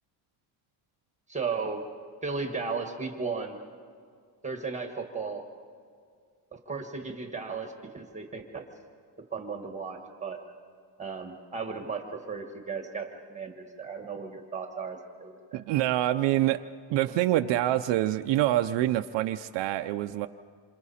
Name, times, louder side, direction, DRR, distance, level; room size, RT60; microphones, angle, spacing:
voice 1, 1.3-1.8 2.2-3.6 4.4-5.4 6.5-8.6 9.3-10.4 11.0-15.6, right 4 dB, 15° right, 4 dB, 1.4 m, -35 dB
voice 2, 15.5-16.6 16.9-20.3, right 14 dB, 65° right, 8 dB, 0.6 m, -26 dB
27.5 x 27.0 x 4.2 m, 2.1 s
cardioid pair, 175°, 47 cm